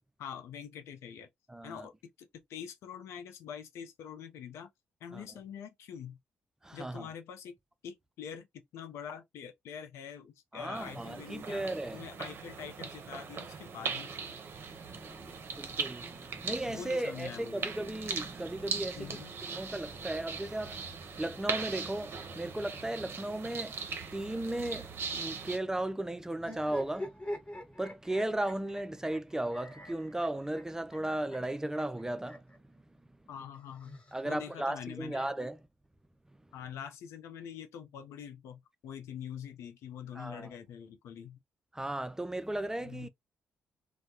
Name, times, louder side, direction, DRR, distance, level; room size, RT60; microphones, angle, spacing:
voice 1, 0.2-1.3 1.6-1.9 2.2-4.7 5.0-6.2 6.7-7.6 7.8-11.7 11.9-14.1 16.6-17.7 19.0-19.3 33.3-35.3 36.5-41.4 42.8-43.1, left 8 dB, 75° left, 0.5 m, -45 dB
voice 2, 1.5-1.9 5.1-5.3 6.6-7.1 10.5-12.0 14.5-27.2 27.5-32.8 34.1-35.6 40.2-40.5 41.7-43.1, right 1 dB, 10° right, 0.3 m, -36 dB
sound 1, 10.7-25.6, right 5 dB, 55° right, 0.6 m, -40 dB
sound 2, 26.4-32.6 33.5-34.7, left 1 dB, 25° left, 1.1 m, -45 dB
2.2 x 2.0 x 2.8 m
supercardioid pair, 50°, 5 cm